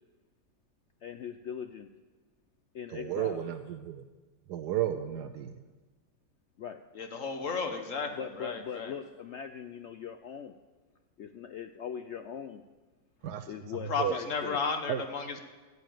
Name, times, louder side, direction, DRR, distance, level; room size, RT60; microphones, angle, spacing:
voice 1, 1.0-1.9 2.7-3.4 6.6-6.8 8.2-10.5 11.2-12.6 13.5-14.6, left 8 dB, 80° left, 9 dB, 0.6 m, -40 dB
voice 2, 2.9-4.0 4.5-5.6 13.2-13.5 14.0-14.2 14.9-15.0, right 11 dB, 75° right, 7 dB, 1.2 m, -33 dB
voice 3, 6.9-8.9 13.9-15.4, left 5 dB, 50° left, 6 dB, 1.5 m, -33 dB
14.0 x 8.2 x 8.9 m, 1.3 s
omnidirectional pair, 1.8 m